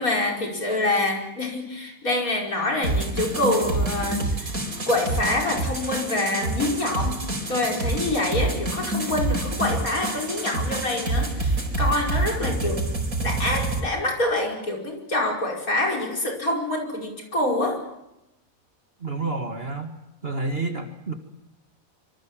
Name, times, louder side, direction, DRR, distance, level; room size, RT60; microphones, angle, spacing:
voice 1, 0.0-4.6 4.9-7.2 7.5-12.9 13.2-17.8, left 2 dB, 75° left, 1 dB, 5.7 m, -26 dB
sound 1, 2.8-13.8, right 2 dB, 75° right, 4.7 m, -27 dB
voice 2, 19.0-20.0 20.2-21.1, right 3 dB, 45° right, 6 dB, 2.1 m, -29 dB
25.5 x 24.5 x 7.5 m, 0.90 s
omnidirectional pair, 1.5 m